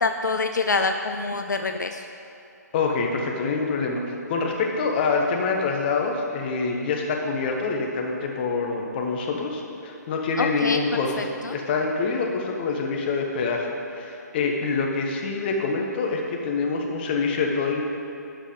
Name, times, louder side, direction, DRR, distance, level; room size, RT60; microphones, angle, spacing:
voice 1, 0.0-2.1 10.4-10.8 11.2-11.6, left 3 dB, 75° left, 6 dB, 0.5 m, -26 dB
voice 2, 2.7-17.8, left 4 dB, 30° left, 1 dB, 1.1 m, -26 dB
11.5 x 5.1 x 5.1 m, 2.9 s
figure-of-eight pair, 135°, 10 cm